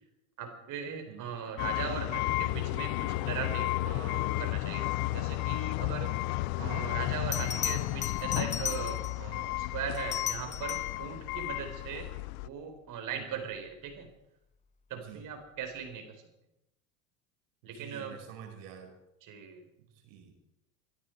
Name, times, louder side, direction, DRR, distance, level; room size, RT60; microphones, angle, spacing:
voice 1, 0.4-12.1 12.4-14.1 14.9-16.2 17.6-18.1 19.2-19.6, right 7 dB, 50° right, 5 dB, 4.4 m, -39 dB
sound 1, 1.6-12.5, left 19 dB, 55° left, 0.7 m, -33 dB
Bell, 7.3-9.3 9.9-11.0 13.7-14.0, left 8 dB, 20° left, 0.5 m, -36 dB
voice 2, 13.1-13.4 14.9-15.2 17.6-19.0 19.8-20.3, right 8 dB, 70° right, 4 dB, 5.3 m, -48 dB
23.5 x 12.5 x 4.7 m, 0.84 s
hypercardioid pair, 95°, 41 cm